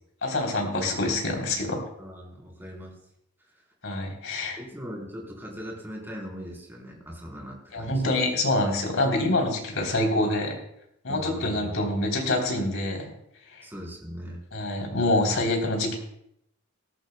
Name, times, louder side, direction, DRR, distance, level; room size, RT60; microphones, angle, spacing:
voice 1, 0.2-1.8 3.8-4.6 7.7-10.6 11.0-13.1 13.5-13.6 14.5-16.0, left 2 dB, 70° left, 1 dB, 3.5 m, -26 dB
voice 2, 2.0-2.9 3.5-3.6 4.6-8.0 11.1-11.8 13.6-14.4, equal, 10° right, -2 dB, 4.0 m, -40 dB
19.0 x 14.0 x 2.3 m, 0.76 s
head